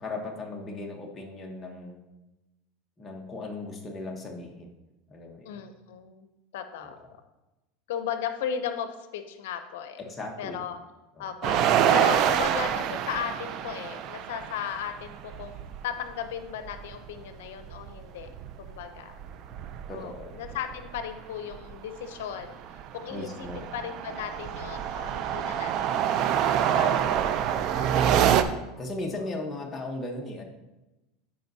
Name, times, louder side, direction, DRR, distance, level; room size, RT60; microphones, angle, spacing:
voice 1, 0.0-2.0 3.0-4.7 5.1-5.6 6.8-6.9 10.0-10.7 11.2-11.3 19.8-20.3 23.1-23.7 28.8-30.4, left 2 dB, 15° left, 0 dB, 1.0 m, -37 dB
voice 2, 5.4-7.0 7.9-10.0 10.4-10.8 11.2-11.6 11.9-18.3 18.6-19.2 19.9-27.3 27.5-28.2, left 8 dB, 85° left, 9 dB, 0.6 m, -36 dB
sound 1, 11.4-15.8 16.1-16.2 16.5-18.8 19.1-21.0 21.5-21.7 22.2-28.4, right 9 dB, 45° right, 0.4 m, -26 dB
12.5 x 5.1 x 2.7 m, 1.0 s
supercardioid pair, 145°, 0 cm